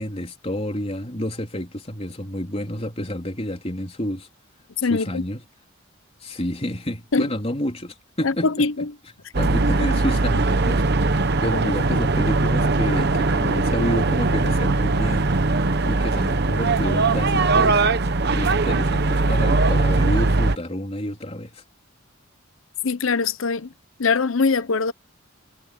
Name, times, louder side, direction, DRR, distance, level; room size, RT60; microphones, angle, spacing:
voice 1, 0.0-4.3 4.9-5.4 6.2-8.9 9.3-10.8 11.4-15.3 15.8-17.9 18.3-21.6, left 1 dB, 30° left, 3.7 m, -29 dB
voice 2, 4.8-5.2 7.1-7.3 8.2-8.9 22.8-23.7 24.0-24.9, left 4 dB, 75° left, 0.8 m, -22 dB
sound 1, 9.3-20.6, right 3 dB, 55° right, 1.0 m, -20 dB
head